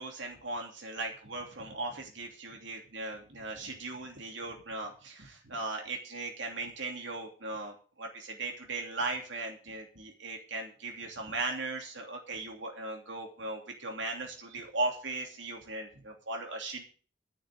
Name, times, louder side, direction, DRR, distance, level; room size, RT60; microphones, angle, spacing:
voice 1, 0.0-16.8, right 2 dB, 85° right, 2 dB, 2.9 m, -38 dB
10.5 x 6.4 x 8.6 m, 0.37 s
head